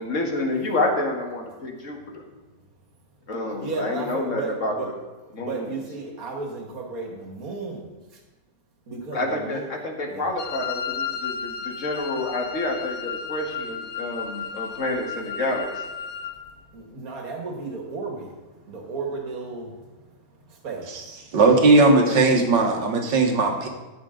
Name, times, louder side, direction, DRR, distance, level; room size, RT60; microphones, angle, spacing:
voice 1, 0.0-2.2 3.3-4.7 5.3-5.7 9.1-15.8 22.0-22.2, left 2 dB, 45° left, 1 dB, 2.0 m, -28 dB
voice 2, 3.5-4.9 5.4-7.9 8.9-9.7 10.1-10.3 16.7-18.3 18.7-19.7 20.6-20.9, right 4 dB, 55° right, 2 dB, 2.1 m, -33 dB
Wind instrument woodwind instrument, 10.4-16.4, left 6 dB, 70° left, 1.4 m, -33 dB
voice 3, 21.3-23.7, right 3 dB, 85° right, 4 dB, 2.0 m, -17 dB
13.5 x 8.8 x 3.8 m, 1.2 s
omnidirectional pair, 1.8 m